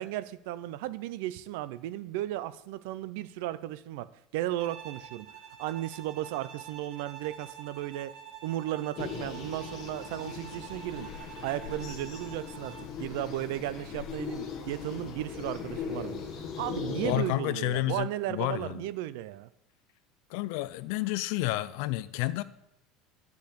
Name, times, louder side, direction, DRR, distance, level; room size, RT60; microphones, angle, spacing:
voice 1, 0.0-4.1 4.3-5.3 5.6-8.1 8.4-11.1 11.4-12.7 13.0-16.2 16.6-19.5, right 14 dB, 65° right, 0.5 m, -35 dB
Bowed string instrument, 4.6-13.0, right 9 dB, 45° right, 1.0 m, -47 dB
sound 1, 8.9-17.2, left 7 dB, 35° left, 1.2 m, -39 dB
voice 2, 17.0-18.8 20.3-22.4, left 17 dB, 60° left, 0.4 m, -30 dB
10.5 x 5.3 x 6.6 m
cardioid pair, 180°, 0 cm